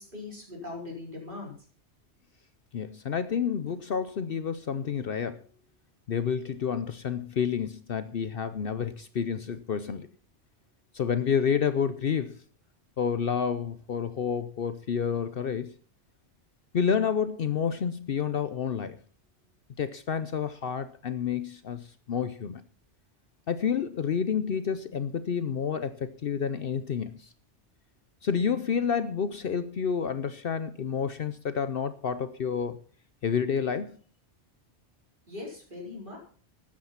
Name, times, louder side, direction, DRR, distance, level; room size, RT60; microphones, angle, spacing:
voice 1, 0.0-1.5 35.3-36.2, left 3 dB, 45° right, 0 dB, 4.6 m, -40 dB
voice 2, 2.7-5.4 6.1-10.1 10.9-12.4 13.0-15.7 16.7-19.0 19.8-22.6 23.5-27.3 28.2-32.8 33.2-34.0, left 7 dB, 55° left, 12 dB, 0.8 m, -29 dB
13.0 x 8.9 x 5.6 m, 0.43 s
omnidirectional pair, 1.2 m